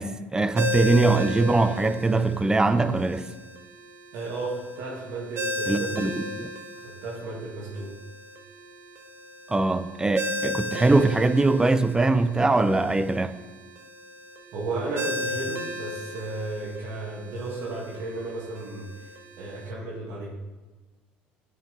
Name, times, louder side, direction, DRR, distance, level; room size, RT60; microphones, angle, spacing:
voice 1, 0.0-3.3 5.7-6.5 9.5-13.3, right 2 dB, 15° right, 0.5 m, -22 dB
Ringtone, 0.6-19.7, left 1 dB, 50° right, 1.2 m, -36 dB
voice 2, 4.1-6.2 6.8-7.9 14.5-19.1 19.4-20.3, right 2 dB, 65° right, 2.0 m, -34 dB
9.2 x 6.1 x 3.9 m
hypercardioid pair, 75°, 5 cm